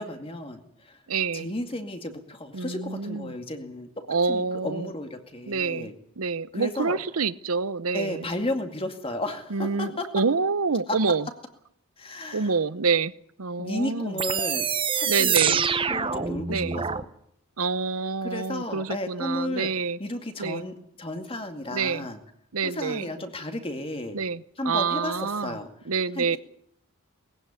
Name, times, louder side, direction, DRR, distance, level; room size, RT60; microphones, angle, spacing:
voice 1, 0.0-1.0 1.3-3.9 4.3-6.0 6.5-7.0 7.9-10.2 10.9-11.0 12.0-12.6 13.6-17.1 18.2-19.7 20.0-22.2 22.6-24.2 24.6-25.7 26.1-26.4, left 1 dB, 25° left, 6 dB, 2.2 m, -33 dB
voice 2, 1.1-1.5 2.5-3.3 4.1-4.9 5.5-5.9 6.2-8.3 9.5-11.3 12.3-13.1 13.4-14.1 15.1-15.6 16.5-16.8 17.6-20.0 20.4-20.7 21.7-22.1 22.5-23.1 24.1-25.6 25.9-26.4, right 5 dB, 75° right, 17 dB, 0.8 m, -27 dB
sound 1, 14.2-17.0, right 6 dB, 25° right, 0.8 m, -25 dB
21.0 x 16.0 x 9.9 m, 0.73 s
head